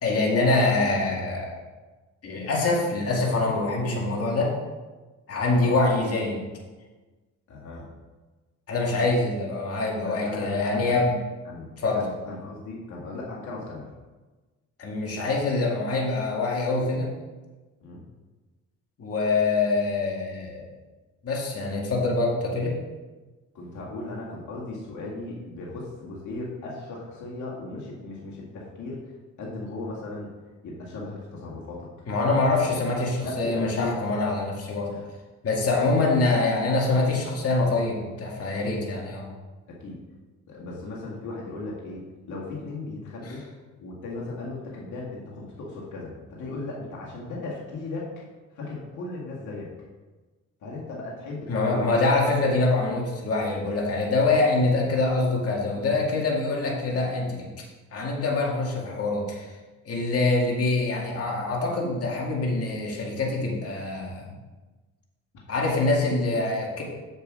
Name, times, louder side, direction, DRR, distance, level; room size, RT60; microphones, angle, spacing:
voice 1, 0.0-1.5 2.2-4.5 5.3-6.4 8.7-11.1 11.8-12.0 14.8-17.1 19.0-20.7 21.2-22.8 32.1-34.9 35.4-39.3 51.5-57.5 57.9-59.4 59.9-64.3 65.5-66.8, left 3 dB, 50° left, -2 dB, 2.1 m, -24 dB
voice 2, 7.5-7.9 10.0-11.0 11.5-13.9 17.8-18.0 23.5-29.1 29.4-30.3 30.6-31.9 32.6-32.7 33.2-34.0 34.9-35.1 35.8-36.0 39.7-40.0 40.5-43.4 43.8-48.1 48.5-49.7 50.6-52.0 56.9-57.5 65.5-65.6, left 2 dB, 75° left, -4 dB, 2.0 m, -37 dB
7.5 x 6.6 x 4.8 m, 1.2 s
cardioid pair, 90°, 30 cm